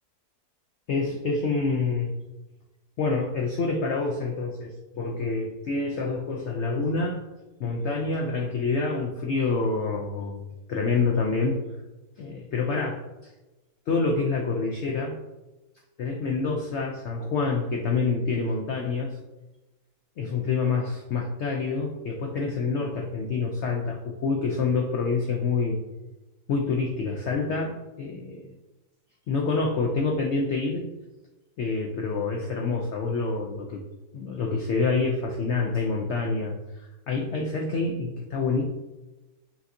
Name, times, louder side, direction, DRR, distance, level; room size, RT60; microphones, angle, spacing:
voice 1, 0.9-2.1 3.0-7.2 7.6-10.4 10.7-11.6 12.2-13.0 13.9-15.2 16.0-19.2 20.2-25.8 26.5-28.5 29.3-30.9 31.6-33.8 34.1-36.6 37.1-38.6, left 4 dB, 75° left, 1 dB, 0.6 m, -27 dB
5.7 x 2.7 x 2.6 m, 1.1 s
omnidirectional pair, 1.7 m